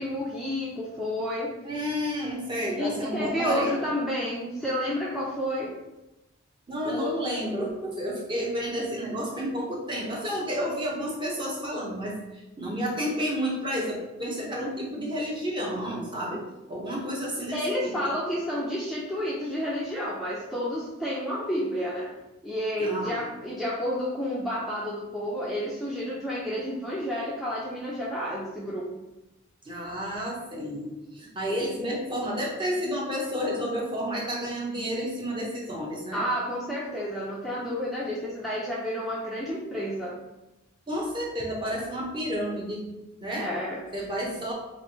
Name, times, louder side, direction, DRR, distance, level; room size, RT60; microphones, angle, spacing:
voice 1, 0.0-1.5 2.7-5.7 6.8-7.2 17.5-22.1 22.4-28.9 36.1-40.2 43.4-43.8, equal, ahead, -7 dB, 0.4 m, -30 dB
voice 2, 1.6-3.7 6.7-16.4 16.7-17.9 22.8-23.2 29.6-36.2 40.9-42.9 43.2-43.5 43.9-44.5, equal, 25° right, -3 dB, 0.8 m, -31 dB
3.3 x 2.5 x 4.1 m, 0.97 s
head